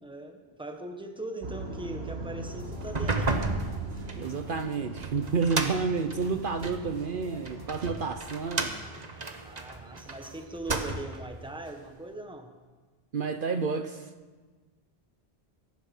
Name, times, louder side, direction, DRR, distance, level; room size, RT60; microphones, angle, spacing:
voice 1, 0.0-3.3 9.4-12.5, right 1 dB, 5° right, 4 dB, 1.4 m, -40 dB
sound 1, 1.4-7.7, right 2 dB, 80° right, 1.7 m, -41 dB
sound 2, 2.5-10.5, right 1 dB, 20° right, 1.7 m, -51 dB
sound 3, 2.8-6.9 7.5-10.2 10.5-11.3, right 3 dB, 40° right, 1.2 m, -32 dB
voice 2, 4.1-8.7 13.1-14.1, right 5 dB, 60° right, 8 dB, 0.9 m, -30 dB
22.0 x 11.0 x 5.5 m, 1.4 s
omnidirectional pair, 1.0 m